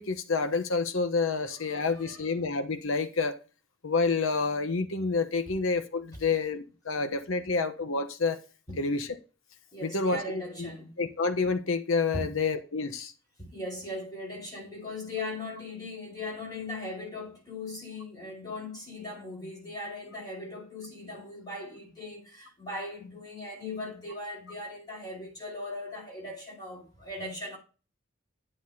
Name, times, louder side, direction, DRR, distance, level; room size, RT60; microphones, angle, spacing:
voice 1, 0.0-3.4 3.8-8.4 8.8-9.2 9.8-10.7 11.0-13.1, left 4 dB, 80° left, 1.0 m, -28 dB
voice 2, 1.6-2.3 6.1-6.2 7.3-7.5 8.7-8.8 9.7-10.9 12.1-12.3 13.4-27.6, left 2 dB, 20° left, 4.6 m, -39 dB
9.9 x 9.6 x 2.8 m
head